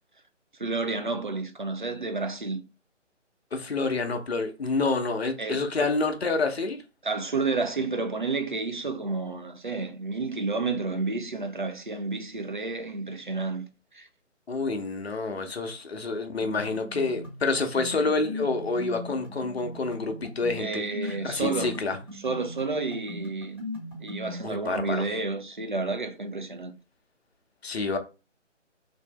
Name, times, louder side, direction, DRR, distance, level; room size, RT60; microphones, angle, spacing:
voice 1, 0.6-2.6 5.4-5.9 7.0-14.1 20.6-21.7 22.2-23.6 24.0-26.7, right 3 dB, 45° right, 0.4 m, -30 dB
voice 2, 3.5-6.8 14.5-22.0 24.4-25.0 27.6-28.0, left 3 dB, 55° left, 0.7 m, -28 dB
sound 1, 16.4-24.4, left 1 dB, 10° right, 0.9 m, -39 dB
3.3 x 2.7 x 3.0 m
figure-of-eight pair, 145°, 37 cm